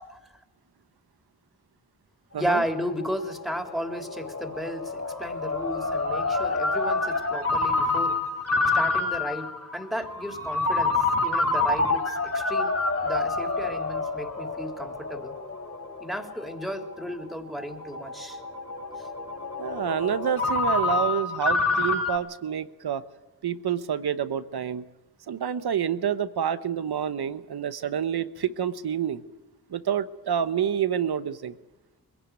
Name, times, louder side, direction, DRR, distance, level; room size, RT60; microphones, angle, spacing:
Ringtone, 2.4-22.2, left 3 dB, 40° left, 3.7 m, -28 dB
voice 1, 2.4-8.2 8.7-12.8 13.0-15.4 16.0-18.4 19.0-19.1, equal, ahead, 5 dB, 3.6 m, -34 dB
voice 2, 19.6-23.0 23.4-24.8 25.3-29.2 29.7-31.5, right 8 dB, 85° right, 13 dB, 1.1 m, -28 dB
22.0 x 16.5 x 9.5 m, 1.0 s
cardioid pair, 50°, 37 cm